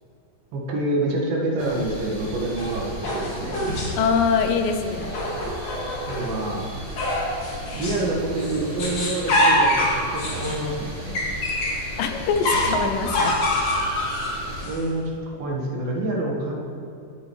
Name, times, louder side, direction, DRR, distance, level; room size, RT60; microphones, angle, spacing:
voice 1, 0.5-3.6 6.1-6.7 7.7-11.2 14.6-16.5, right 2 dB, 80° right, -2 dB, 3.5 m, -27 dB
sound 1, 1.6-14.7, equal, 20° right, 1.8 m, -36 dB
sound 2, 2.6-4.1 5.0-6.3 7.0-8.1 8.4-11.8 12.4-14.8, left 1 dB, 50° left, 3.3 m, -25 dB
voice 2, 4.0-5.1 12.0-13.4, left 6 dB, 80° left, 6 dB, 2.3 m, -23 dB
18.0 x 8.6 x 3.2 m, 2.6 s
omnidirectional pair, 4.1 m